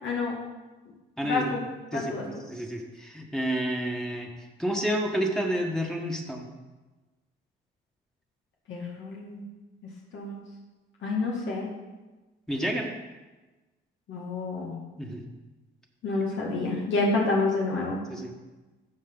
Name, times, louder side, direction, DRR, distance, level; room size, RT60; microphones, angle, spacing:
voice 1, 0.0-0.4 1.2-1.6 1.9-2.4 8.7-9.5 10.1-10.4 11.0-11.7 14.1-14.8 16.0-18.0, left 3 dB, 70° left, -3 dB, 2.1 m, -28 dB
voice 2, 1.9-4.3 4.6-6.5 12.5-12.9 15.0-15.2 18.1-18.3, equal, 5° left, 0 dB, 1.5 m, -30 dB
15.0 x 5.1 x 3.9 m, 1.2 s
cardioid pair, 90°, 20 cm